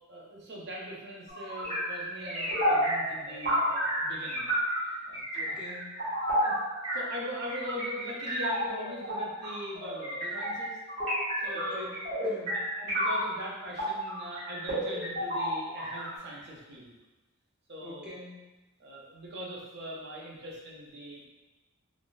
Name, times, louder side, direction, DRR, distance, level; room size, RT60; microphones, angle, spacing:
voice 1, 0.1-4.5 4.8-5.6 6.4-6.5 6.9-10.8 11.4-11.9 12.5-16.9 17.7-18.2 18.8-21.3, equal, 55° right, -3 dB, 0.7 m, -41 dB
sound 1, 1.3-13.4 13.8-16.2, equal, 35° right, 1.4 m, -31 dB
voice 2, 5.3-6.0 11.5-12.6 17.8-18.5, left 2 dB, 5° right, -6 dB, 0.6 m, -45 dB
3.5 x 2.5 x 2.3 m, 1.1 s
head